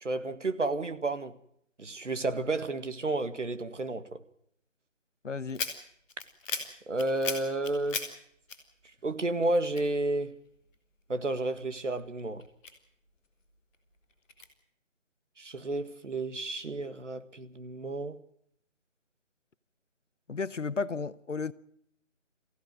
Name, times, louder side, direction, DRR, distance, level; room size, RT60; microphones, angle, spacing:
voice 1, 0.0-1.3 1.8-4.0 6.9-8.0 9.0-10.3 11.1-12.4 15.4-18.2, right 2 dB, 70° right, 2.0 m, -31 dB
voice 2, 5.2-5.6 20.3-21.5, left 4 dB, 70° left, 1.0 m, -33 dB
sound 1, 5.5-9.1 9.4-10.7 11.2-13.2 13.7-14.5, left 3 dB, 5° left, 1.4 m, -38 dB
23.5 x 16.0 x 7.8 m
figure-of-eight pair, 165°, 38 cm